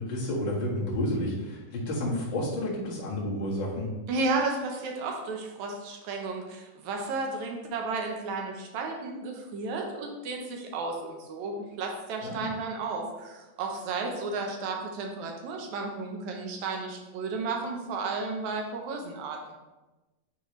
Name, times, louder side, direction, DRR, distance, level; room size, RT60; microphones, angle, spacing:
voice 1, 0.0-3.9 12.2-12.4, left 1 dB, 45° left, -6 dB, 1.7 m, -30 dB
voice 2, 4.1-19.5, right 3 dB, 70° right, 1 dB, 1.8 m, -33 dB
9.6 x 4.1 x 3.1 m, 1.1 s
omnidirectional pair, 4.1 m